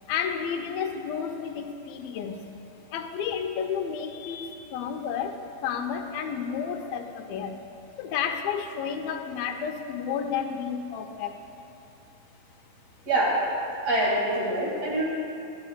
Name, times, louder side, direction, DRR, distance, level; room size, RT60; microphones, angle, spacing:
voice 1, 0.1-2.5 2.9-7.6 8.0-11.3, left 7 dB, 85° left, 5 dB, 2.4 m, -31 dB
voice 2, 13.1-13.4 13.8-15.1, right 1 dB, 45° right, -5 dB, 2.9 m, -25 dB
21.5 x 12.0 x 2.3 m, 2.7 s
omnidirectional pair, 4.2 m